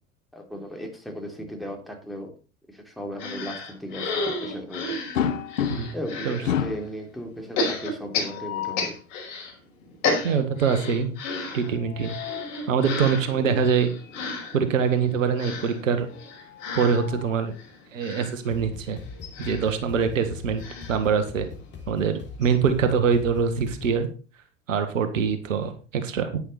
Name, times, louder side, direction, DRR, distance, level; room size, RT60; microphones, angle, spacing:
voice 1, 0.3-2.3 2.7-5.0 5.9-8.9, equal, ahead, 2 dB, 3.4 m, -36 dB
sound 1, 3.2-6.5 7.6-9.5 9.8-21.8 22.1-22.2 22.4-22.6, left 3 dB, 50° left, 5.5 m, -33 dB
sound 2, 5.1-6.1 6.4-6.9 8.2-8.9 11.6-12.6 14.0-14.2 14.6-14.7 16.2-17.5, left 9 dB, 70° left, 1.0 m, -31 dB
voice 2, 10.2-11.1 11.5-12.1 12.7-13.9 14.5-16.1 16.8-17.5 17.9-19.0 19.4-20.6 20.9-21.5 21.9-24.1 24.7-26.4, right 6 dB, 70° right, 9 dB, 1.7 m, -24 dB
sound 3, 18.5-24.1, left 5 dB, 25° left, 3.2 m, -41 dB
11.0 x 9.9 x 4.3 m, 0.35 s
figure-of-eight pair, 80°, 40 cm